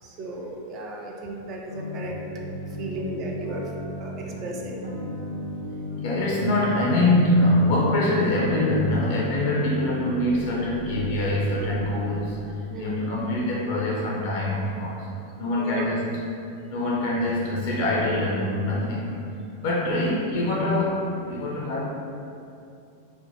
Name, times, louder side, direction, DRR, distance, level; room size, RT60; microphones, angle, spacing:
voice 1, 0.0-2.1 2.8-3.7 4.0-4.9 12.7-13.4 15.6-15.8 19.9-20.2, right 1 dB, 35° right, 0 dB, 0.3 m, -34 dB
sound 1, 1.7-11.5, left 1 dB, 85° right, 0.7 m, -35 dB
voice 2, 6.0-15.1 15.4-16.0 16.7-19.2 19.6-21.8, left 1 dB, 50° left, -4 dB, 0.4 m, -24 dB
sound 2, 10.3-12.8 13.2-13.3, right 8 dB, 50° right, 0.7 m, -40 dB
3.2 x 2.0 x 2.7 m, 2.6 s
figure-of-eight pair, 90°, 0 cm